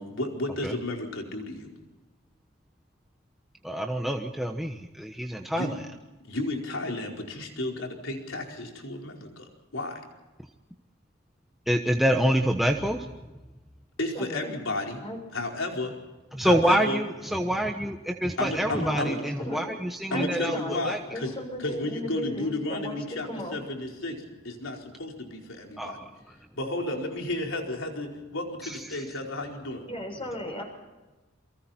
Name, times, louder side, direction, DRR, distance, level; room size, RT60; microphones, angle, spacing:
voice 1, 0.0-1.7 5.4-5.8 6.2-10.0 14.0-15.0 15.3-15.9 16.4-17.0 18.4-19.2 20.1-21.3 21.6-23.3 23.5-26.0 26.5-29.8, left 2 dB, 65° left, 1 dB, 4.8 m, -32 dB
voice 2, 3.6-5.8 11.7-13.1 16.3-21.0 25.8-26.3 28.6-29.0, equal, ahead, 3 dB, 1.1 m, -27 dB
voice 3, 14.1-14.5 15.0-15.2 18.8-19.7 20.1-23.6 29.9-30.6, left 1 dB, 25° left, 3 dB, 6.9 m, -36 dB
28.5 x 24.0 x 4.5 m, 1.1 s
head